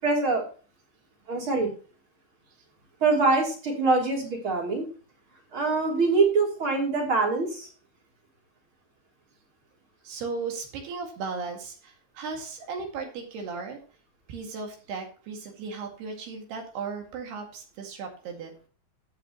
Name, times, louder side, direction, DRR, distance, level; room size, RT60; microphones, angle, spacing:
voice 1, 0.0-0.4 1.3-1.7 3.0-4.9 5.5-7.7, right 3 dB, 30° right, -1 dB, 3.6 m, -24 dB
voice 2, 10.0-13.8 14.3-18.5, right 4 dB, 70° right, 2 dB, 4.0 m, -36 dB
13.0 x 9.1 x 3.0 m, 0.38 s
omnidirectional pair, 5.1 m